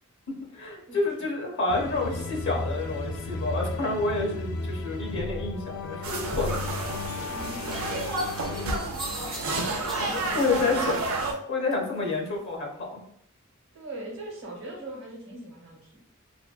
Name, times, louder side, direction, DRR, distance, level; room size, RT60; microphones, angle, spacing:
voice 1, 0.3-6.6 9.6-9.7 10.0-10.8 11.5-13.0, left 3 dB, 55° left, 0 dB, 0.7 m, -29 dB
sound 1, 1.7-8.8, left 2 dB, 80° left, 0.3 m, -34 dB
sound 2, 6.0-11.3, right 2 dB, 75° right, 0.5 m, -31 dB
voice 2, 7.3-8.4 10.0-10.9 13.7-16.0, right 1 dB, 60° right, -3 dB, 0.9 m, -41 dB
sound 3, 7.7-11.4 11.7-12.5, left 1 dB, ahead, 0.4 m, -42 dB
2.6 x 2.1 x 2.3 m, 0.71 s
head